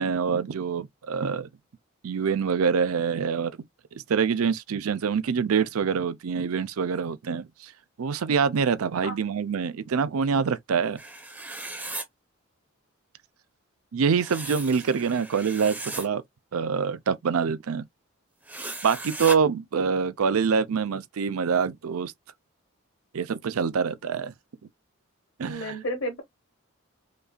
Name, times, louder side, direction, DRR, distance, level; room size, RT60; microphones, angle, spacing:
voice 1, 0.0-1.5 2.0-3.5 3.9-7.7 8.0-11.0 13.9-16.2 16.5-17.8 18.8-22.1 23.1-24.3 25.4-25.8, right 6 dB, 90° right, 0.5 m, -25 dB
sound 1, 11.0-12.0 14.2-16.1 18.4-19.4, right 2 dB, 5° right, 0.6 m, -36 dB
voice 2, 25.5-26.2, equal, 75° left, 1.1 m, -31 dB
5.2 x 2.4 x 2.2 m
head